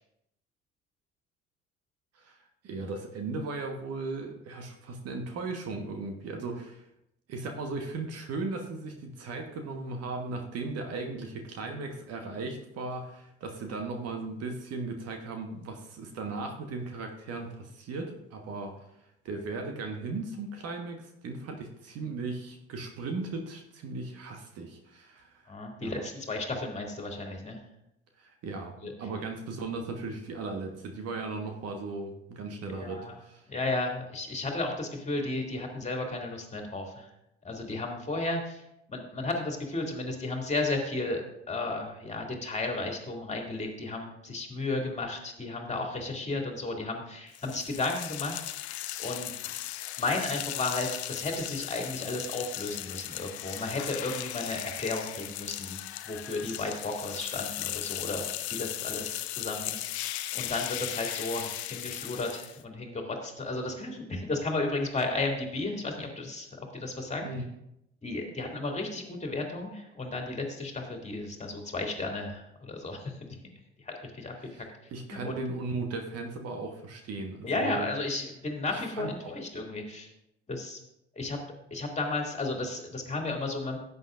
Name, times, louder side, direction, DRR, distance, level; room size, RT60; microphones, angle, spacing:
voice 1, 2.1-6.9 7.3-18.8 19.2-25.5 25.8-26.0 28.2-33.5 67.2-67.5 74.4-77.9 78.7-79.3, right 3 dB, 45° right, 5 dB, 1.4 m, -37 dB
voice 2, 25.5-27.6 28.8-28.9 32.7-33.1 33.5-37.1 37.4-48.4 49.0-49.5 50.0-60.0 60.3-67.2 68.0-73.1 73.8-74.6 75.1-75.4 77.4-80.1 80.5-80.8 81.2-81.4 81.7-83.8, left 2 dB, 20° left, 1 dB, 2.6 m, -34 dB
sound 1, 47.3-62.6, left 13 dB, 75° left, 0.6 m, -37 dB
16.5 x 8.3 x 2.5 m, 0.82 s
figure-of-eight pair, 55°, 33 cm